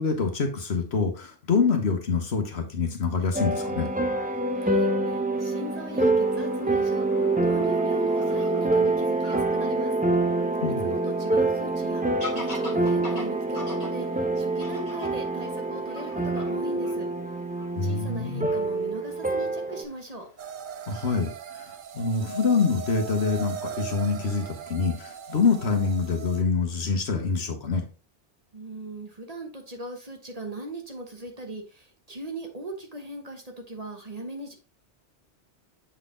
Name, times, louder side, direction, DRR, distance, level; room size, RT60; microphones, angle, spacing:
voice 1, 0.0-3.9 10.6-10.9 17.8-18.5 20.9-27.8, left 4 dB, 65° left, 4 dB, 1.4 m, -26 dB
sound 1, 3.3-19.8, right 2 dB, 10° right, 0.6 m, -26 dB
voice 2, 4.5-9.9 10.8-12.1 12.3-17.1 17.8-20.3 28.5-34.5, right 2 dB, 35° right, 3 dB, 1.1 m, -39 dB
Fowl / Bird vocalization bird call bird song, 5.4-21.1, left 2 dB, 35° left, 1.9 m, -46 dB
sound 2, 20.4-26.4, right 6 dB, 55° right, 0.7 m, -38 dB
7.2 x 4.0 x 3.8 m, 0.33 s
omnidirectional pair, 1.2 m